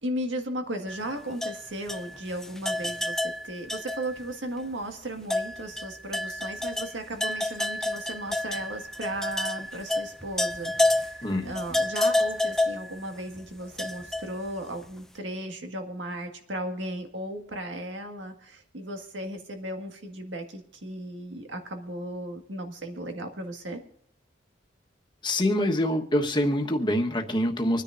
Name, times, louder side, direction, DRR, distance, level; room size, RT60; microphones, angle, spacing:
voice 1, 0.0-23.8, right 1 dB, 85° right, 5 dB, 1.8 m, -36 dB
sound 1, 0.9-4.3 4.6-4.7 5.2-14.9, left 2 dB, 5° left, 0.5 m, -29 dB
voice 2, 11.2-11.5 25.2-27.8, left 1 dB, 25° left, 3 dB, 1.3 m, -25 dB
25.5 x 10.0 x 2.6 m, 0.66 s
head